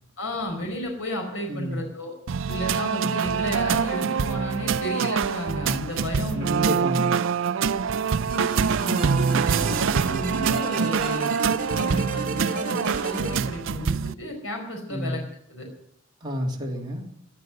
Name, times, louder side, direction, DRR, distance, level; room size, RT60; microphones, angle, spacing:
voice 1, 0.2-2.1 2.5-6.8 8.8-9.1 9.4-11.3 11.8-15.2 15.5-15.7, equal, 70° left, 2 dB, 4.8 m, -32 dB
voice 2, 1.5-1.8 6.3-7.2 14.9-15.2 16.2-17.0, equal, 25° right, -1 dB, 3.1 m, -30 dB
sound 1, 2.3-14.1, right 6 dB, 70° right, 0.5 m, -25 dB
sound 2, 8.3-13.4, right 3 dB, 45° right, 2.8 m, -33 dB
17.0 x 9.6 x 7.9 m, 0.70 s
head